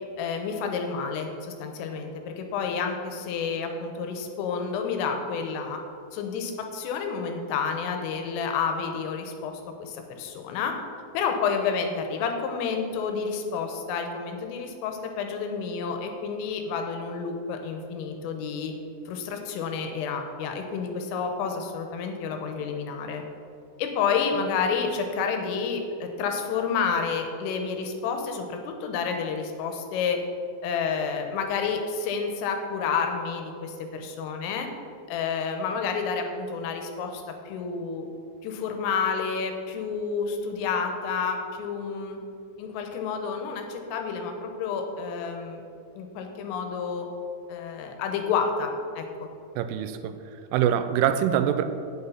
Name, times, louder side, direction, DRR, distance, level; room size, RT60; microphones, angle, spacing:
voice 1, 0.2-5.8 6.1-9.5 9.8-10.7 11.2-18.7 19.1-23.2 23.8-30.2 30.6-34.7 35.1-38.1 38.4-42.2 42.6-45.6 46.0-47.1 47.5-49.3, left 5 dB, 90° left, 4 dB, 3.5 m, -30 dB
voice 2, 49.6-50.1 50.5-51.6, right 10 dB, 85° right, 10 dB, 3.0 m, -24 dB
8.3 x 7.2 x 5.5 m, 2.5 s
omnidirectional pair, 5.7 m